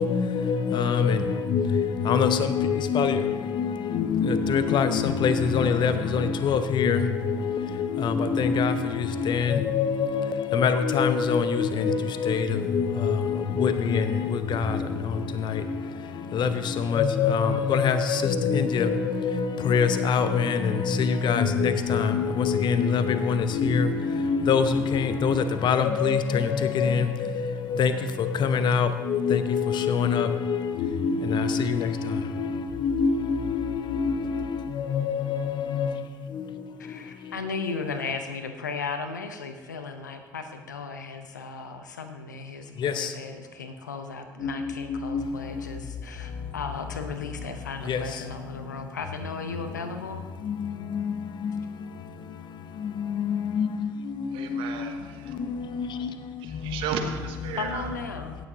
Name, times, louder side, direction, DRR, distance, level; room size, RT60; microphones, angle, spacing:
voice 1, 0.0-14.8 16.3-16.5 16.8-27.9 28.2-32.5 32.8-34.4 34.8-35.9 42.8-43.1 44.4-44.5 44.9-45.2 47.9-48.0 50.5-50.6 50.9-51.0 53.2-53.7 54.5-54.6 55.8-55.9, left 6 dB, 55° left, 10 dB, 0.8 m, -24 dB
voice 2, 36.8-50.3 57.6-58.4, left 4 dB, 90° left, 8 dB, 0.7 m, -36 dB
voice 3, 54.3-55.4 56.4-57.9, right 7 dB, 65° right, 5 dB, 1.1 m, -34 dB
16.5 x 7.0 x 3.8 m, 1.3 s
figure-of-eight pair, 50°, 9 cm